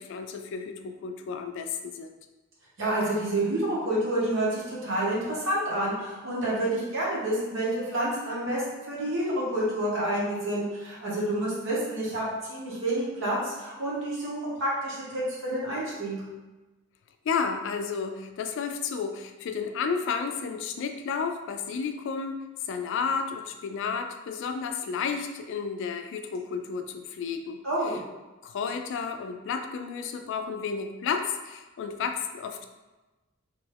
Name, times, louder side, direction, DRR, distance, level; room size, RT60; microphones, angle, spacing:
voice 1, 0.0-2.1 17.3-22.4 22.7-27.6 28.4-32.6, left 5 dB, 60° left, 6 dB, 0.3 m, -32 dB
voice 2, 2.8-16.1 27.6-28.0, right 1 dB, 65° right, -6 dB, 1.1 m, -29 dB
2.9 x 2.3 x 3.3 m, 1.1 s
head